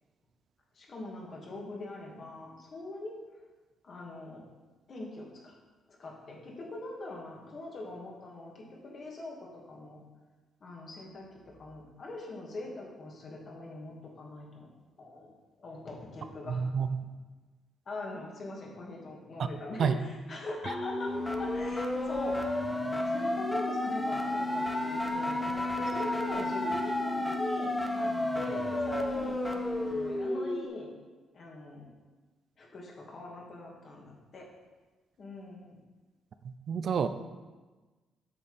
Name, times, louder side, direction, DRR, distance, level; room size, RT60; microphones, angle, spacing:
voice 1, 0.7-3.2 3.8-4.4 4.9-5.5 6.0-10.0 10.6-14.7 15.0-16.7 17.9-22.4 23.1-30.9 31.3-31.9 32.6-34.5 35.2-35.8, left 2 dB, 50° left, -2 dB, 2.6 m, -42 dB
voice 2, 16.5-16.9 19.4-19.5 19.8-19.9 36.4-37.1, right 6 dB, 55° right, 10 dB, 0.5 m, -29 dB
sound 1, 20.7-30.7, left 1 dB, 5° left, 1.0 m, -31 dB
8.4 x 6.8 x 5.2 m, 1.3 s
cardioid pair, 90°, 0 cm